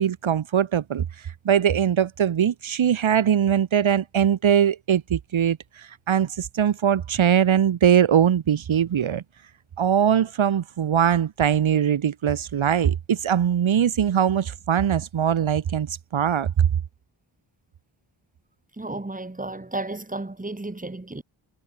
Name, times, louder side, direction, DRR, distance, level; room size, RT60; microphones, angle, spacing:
voice 1, 0.0-9.2 9.8-16.7, right 9 dB, 75° right, 1.4 m, -21 dB
voice 2, 18.8-21.2, right 2 dB, 15° right, 3.2 m, -33 dB
wide cardioid pair, 110°, 48 cm